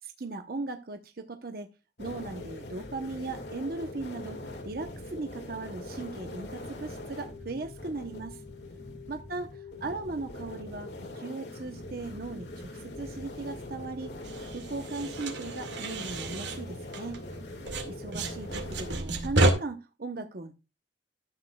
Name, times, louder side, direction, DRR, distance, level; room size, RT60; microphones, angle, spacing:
voice 1, 0.0-1.7 2.0-8.4 9.1-14.1 14.5-17.2 17.8-20.5, right 3 dB, 55° right, 6 dB, 0.9 m, -38 dB
sound 1, 2.0-19.0, left 1 dB, 70° left, 2.0 m, -42 dB
sound 2, 14.2-17.4 17.7-19.5, right 2 dB, 85° right, 2.1 m, -30 dB
13.0 x 8.4 x 2.3 m, 0.28 s
head